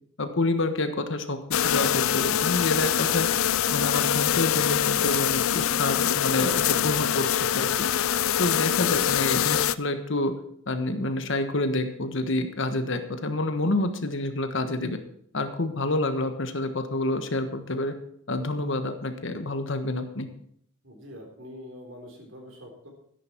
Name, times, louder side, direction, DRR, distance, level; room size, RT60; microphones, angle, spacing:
voice 1, 0.2-3.3 3.7-7.9 8.4-10.3 10.7-15.0 15.3-18.0 18.3-20.3, left 2 dB, 60° left, 8 dB, 1.3 m, -28 dB
sound 1, 1.5-9.7, left 10 dB, 75° left, 0.5 m, -24 dB
voice 2, 20.8-22.9, left 1 dB, 65° right, 2 dB, 3.9 m, -44 dB
13.0 x 10.5 x 4.5 m, 0.67 s
head